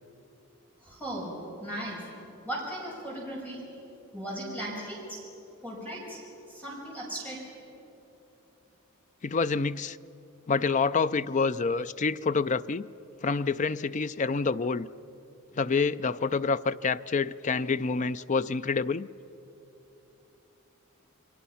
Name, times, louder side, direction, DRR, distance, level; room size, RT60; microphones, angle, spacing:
voice 1, 0.8-2.0 2.4-3.6 4.1-5.2 5.6-6.2 6.5-7.4, right 1 dB, 10° left, -4 dB, 6.0 m, -37 dB
voice 2, 9.2-10.0 10.5-12.9 13.2-14.9 15.5-19.1, left 4 dB, 35° left, 14 dB, 0.4 m, -27 dB
29.5 x 22.5 x 5.8 m, 3.0 s
head